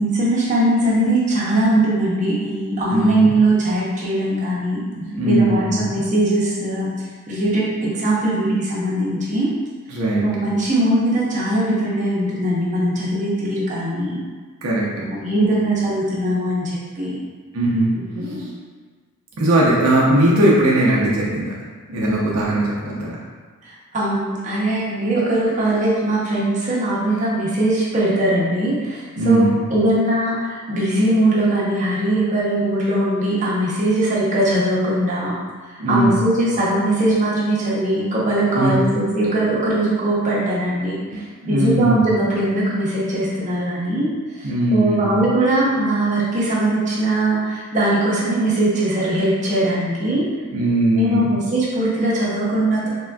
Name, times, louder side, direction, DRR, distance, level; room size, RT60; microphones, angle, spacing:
voice 1, 0.0-4.9 5.2-6.9 7.3-9.5 10.2-14.2 14.9-17.2 17.9-18.4 23.6-35.3 35.9-50.3 50.9-52.9, right 1 dB, 35° right, -7 dB, 0.7 m, -20 dB
voice 2, 2.9-3.3 5.0-5.7 9.9-10.3 14.6-15.1 17.5-17.9 18.2-18.5 19.4-21.5 21.9-23.2 29.2-29.5 35.8-36.2 38.5-38.7 41.4-42.0 44.4-45.2 50.5-51.3, right 1 dB, 75° right, -5 dB, 0.5 m, -19 dB
3.5 x 2.4 x 2.2 m, 1.5 s
head